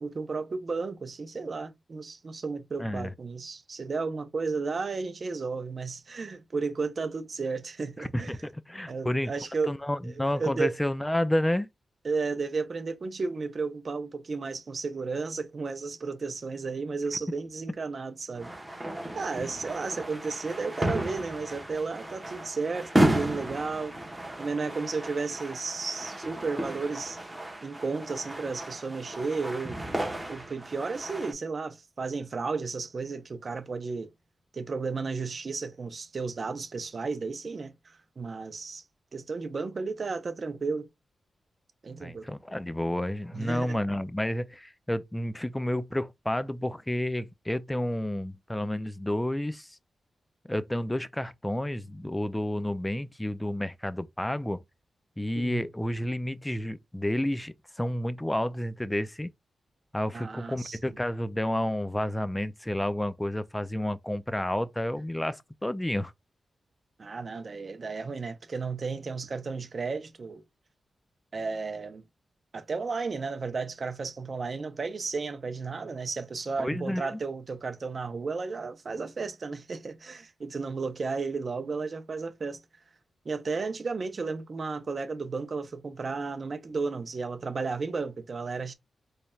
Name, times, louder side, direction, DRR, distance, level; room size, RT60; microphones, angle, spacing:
voice 1, 0.0-8.4 8.9-9.7 10.0-10.7 12.0-18.5 19.1-24.0 24.4-27.2 27.6-29.8 30.3-34.1 34.5-38.8 39.1-40.9 41.8-42.3 43.3-43.8 55.3-55.7 60.1-60.8 67.0-70.4 71.3-72.0 72.5-82.6 83.2-88.7, right 4 dB, 40° right, 0.6 m, -33 dB
voice 2, 2.8-3.1 8.0-9.3 9.7-11.7 42.0-49.8 50.5-54.6 55.2-59.3 59.9-66.1 76.6-77.2, left 1 dB, 10° left, 0.3 m, -30 dB
sound 1, 18.3-31.3, right 1 dB, 10° right, 1.0 m, -33 dB
4.0 x 3.2 x 2.3 m
wide cardioid pair, 155°, 0 cm